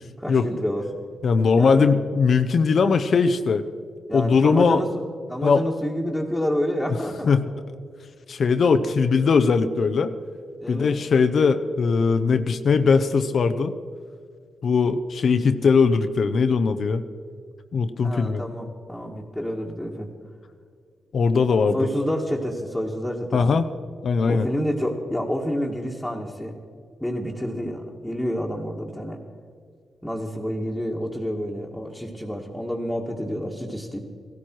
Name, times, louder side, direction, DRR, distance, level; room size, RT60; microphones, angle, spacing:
voice 1, 0.2-0.9 1.6-1.9 4.1-5.0 5.3-7.3 10.6-11.0 18.0-20.1 21.7-23.6 24.3-26.5 27.0-29.2 30.0-34.0, equal, ahead, -4 dB, 1.8 m, -28 dB
voice 2, 1.2-3.6 4.1-4.8 5.4-5.6 7.2-7.4 8.3-10.1 10.7-13.7 14.6-17.0 17.7-18.4 21.1-21.8 23.3-23.6 24.0-24.5, left 5 dB, 60° left, 9 dB, 0.7 m, -20 dB
16.0 x 13.0 x 4.6 m, 2.1 s
cardioid pair, 65°, 0 cm